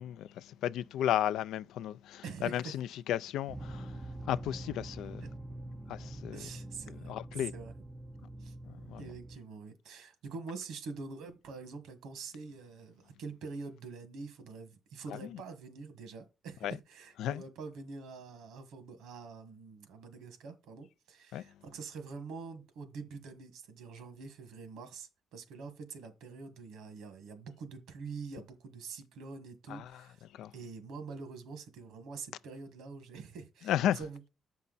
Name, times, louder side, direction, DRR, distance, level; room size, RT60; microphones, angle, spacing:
voice 1, 0.0-5.2 5.9-6.5 6.9-7.5 8.6-9.1 15.1-15.4 16.6-16.8 17.2-17.4 21.3-21.4 29.7-30.5 33.6-34.0, left 11 dB, 85° left, 0.3 m, -34 dB
voice 2, 2.2-2.7 6.3-7.7 8.4-8.5 9.0-30.2 30.5-34.3, right 4 dB, 85° right, 1.5 m, -45 dB
sound 1, 3.5-9.4, right 1 dB, 15° right, 0.5 m, -45 dB
7.4 x 5.5 x 4.0 m
cardioid pair, 90°, 0 cm